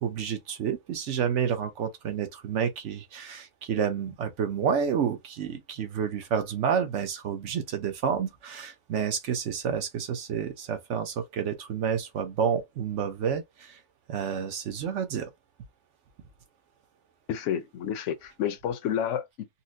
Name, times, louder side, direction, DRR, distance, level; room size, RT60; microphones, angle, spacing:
voice 1, 0.0-13.8 14.1-15.3, right 7 dB, 75° right, 1.1 m, -29 dB
voice 2, 17.3-19.5, left 9 dB, 80° left, 0.9 m, -30 dB
4.2 x 2.0 x 2.6 m
omnidirectional pair, 1.3 m